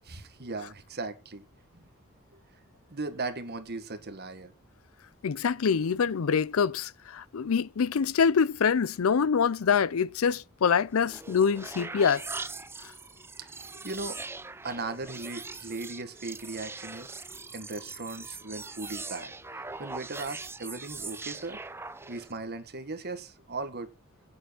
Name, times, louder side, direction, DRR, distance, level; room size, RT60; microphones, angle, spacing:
voice 1, 0.0-1.4 2.9-4.5 13.4-14.2 14.6-17.2 17.5-21.6 22.0-23.9, right 3 dB, 50° right, 1.7 m, -38 dB
voice 2, 5.2-12.2, left 6 dB, 70° left, 0.5 m, -25 dB
sound 1, 10.9-22.4, right 3 dB, 10° right, 0.5 m, -41 dB
9.6 x 7.8 x 5.8 m
head